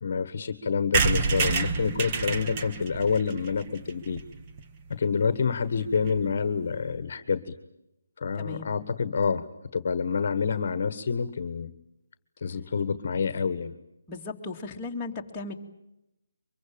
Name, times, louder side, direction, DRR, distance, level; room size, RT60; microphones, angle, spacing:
voice 1, 0.0-4.2 4.9-7.4 8.2-9.4 9.7-11.7 12.4-13.7, left 5 dB, 50° left, 12 dB, 1.5 m, -27 dB
sound 1, 0.9-4.6 5.1-5.2 5.3-5.4 5.7-5.8 6.0-6.2, right 5 dB, 30° right, 1.4 m, -28 dB
voice 2, 8.4-8.7 14.1-15.6, left 3 dB, 15° left, -3 dB, 2.6 m, -36 dB
24.5 x 23.0 x 8.9 m, 0.89 s
figure-of-eight pair, 155°, 0 cm